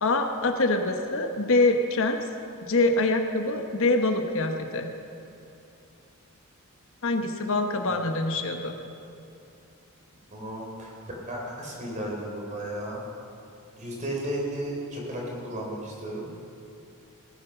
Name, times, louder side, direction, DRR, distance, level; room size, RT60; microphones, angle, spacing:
voice 1, 0.0-2.2 2.6-4.9 7.0-8.8, left 2 dB, 65° left, 5 dB, 1.0 m, -25 dB
voice 2, 10.3-10.9 11.3-13.0 13.7-16.3, right 1 dB, 35° right, -2 dB, 3.4 m, -34 dB
18.5 x 9.6 x 5.8 m, 2.7 s
head